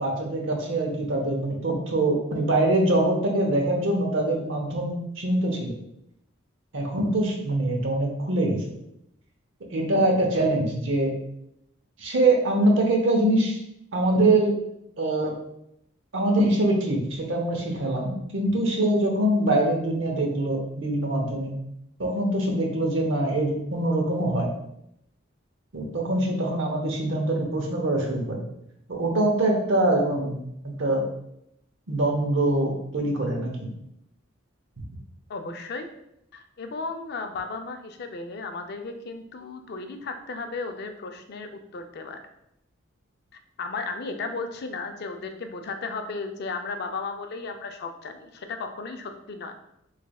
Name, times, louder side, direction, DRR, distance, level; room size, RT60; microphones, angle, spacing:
voice 1, 0.0-5.7 6.7-8.6 9.7-11.1 12.0-13.6 13.9-14.5 15.0-15.3 16.1-21.6 22.0-24.5 25.7-28.4 28.9-31.0 31.9-33.7, right 1 dB, 70° right, 1 dB, 0.8 m, -24 dB
voice 2, 35.3-35.9 36.3-42.2 43.6-49.5, left 4 dB, 55° left, 6 dB, 0.4 m, -35 dB
4.0 x 3.2 x 2.3 m, 0.79 s
head